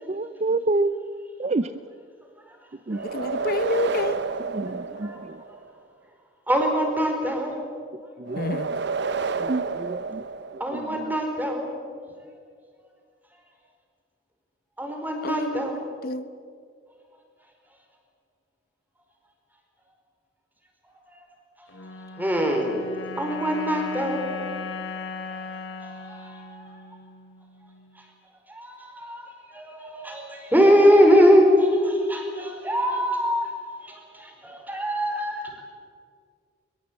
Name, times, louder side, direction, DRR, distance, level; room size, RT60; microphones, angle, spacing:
voice 1, 0.1-0.9 1.4-1.7 2.9-3.0 4.5-5.4 8.2-8.8 9.3-10.2 10.7-11.1, right 2 dB, 35° right, 13 dB, 0.5 m, -28 dB
sound 1, 2.9-5.7 8.3-11.0, right 4 dB, 65° right, 0.9 m, -30 dB
voice 2, 3.1-4.2 8.4-8.7 15.2-16.3, left 2 dB, 55° left, 12 dB, 0.8 m, -28 dB
voice 3, 6.5-7.7 10.6-11.8 14.8-15.9 22.2-22.8 23.2-24.6 25.4-25.5 25.8-26.7 28.5-33.5 33.8-35.6, equal, 10° right, 2 dB, 4.7 m, -23 dB
sound 2, 21.7-28.1, left 4 dB, 75° left, 3.4 m, -38 dB
22.5 x 22.0 x 8.8 m, 2.2 s
head